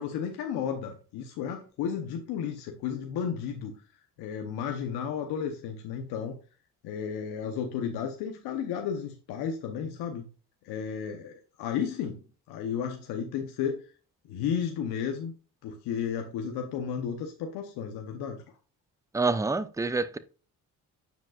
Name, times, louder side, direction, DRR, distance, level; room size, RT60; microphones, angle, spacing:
voice 1, 0.0-3.7 4.2-6.4 6.8-10.3 10.6-13.9 14.3-15.3 15.6-18.4, left 7 dB, 90° left, 0.9 m, -33 dB
voice 2, 19.1-20.2, right 3 dB, 10° right, 0.5 m, -27 dB
9.2 x 5.2 x 2.4 m
cardioid pair, 70°, 38 cm